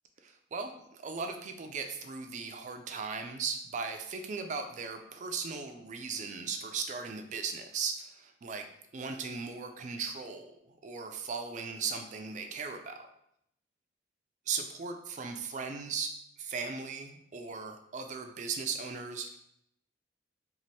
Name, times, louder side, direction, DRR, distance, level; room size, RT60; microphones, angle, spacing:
voice 1, 0.2-8.7 8.9-13.1 14.5-16.1 16.4-19.3, right 5 dB, 40° right, 6 dB, 0.3 m, -37 dB
2.7 x 2.5 x 3.1 m, 0.76 s
head